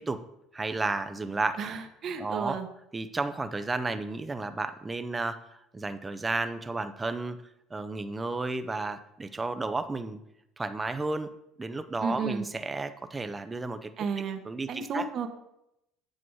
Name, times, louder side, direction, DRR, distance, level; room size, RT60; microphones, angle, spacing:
voice 1, 0.5-1.6 2.2-2.6 2.9-7.4 7.7-10.2 10.6-11.3 11.6-13.9 14.4-15.1, right 3 dB, 15° right, 10 dB, 0.5 m, -32 dB
voice 2, 1.6-2.7 12.0-12.5 14.0-14.4 14.7-15.3, right 5 dB, 35° right, 6 dB, 1.0 m, -32 dB
8.5 x 7.7 x 4.7 m, 0.83 s
cardioid pair, 155°, 0 cm